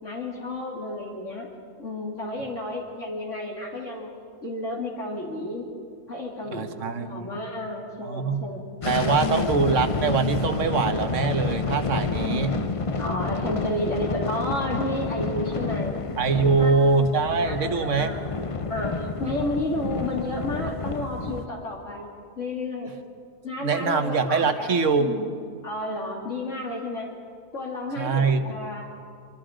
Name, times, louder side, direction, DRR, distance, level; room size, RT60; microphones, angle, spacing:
voice 1, 0.0-1.5 1.8-4.1 4.4-5.7 6.1-8.7 9.2-10.0 12.2-12.7 13.0-16.0 16.4-16.8 17.4-22.1 22.4-22.9 23.4-24.7 25.0-25.3 25.6-27.1 27.5-28.9, left 1 dB, 55° left, -2 dB, 2.9 m, -32 dB
voice 2, 6.5-7.3 8.0-8.4 8.9-12.5 16.2-18.1 23.6-25.1 28.0-28.6, right 4 dB, 55° right, 8 dB, 1.6 m, -23 dB
sound 1, 8.8-21.5, left 4 dB, 35° left, 0.6 m, -29 dB
25.0 x 25.0 x 5.1 m, 2.2 s
omnidirectional pair, 1.6 m